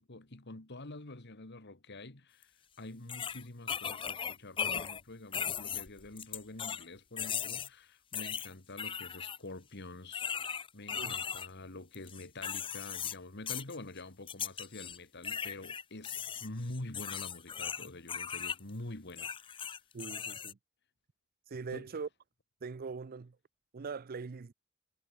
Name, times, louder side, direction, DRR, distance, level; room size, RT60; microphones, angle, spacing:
voice 1, 0.0-19.7 21.7-21.9, left 2 dB, 55° left, 2.2 m, -47 dB
sound 1, 2.4-2.5 3.1-5.0 5.3-6.8 7.2-7.7 8.1-9.4 10.1-11.5 11.9-13.2 13.5-13.8 14.3-15.0 15.2-18.6 19.1-20.5, left 7 dB, 25° left, 0.5 m, -38 dB
voice 2, 19.9-20.6 21.5-22.1 22.6-23.4 23.7-24.5, right 4 dB, 45° right, 0.5 m, -41 dB
head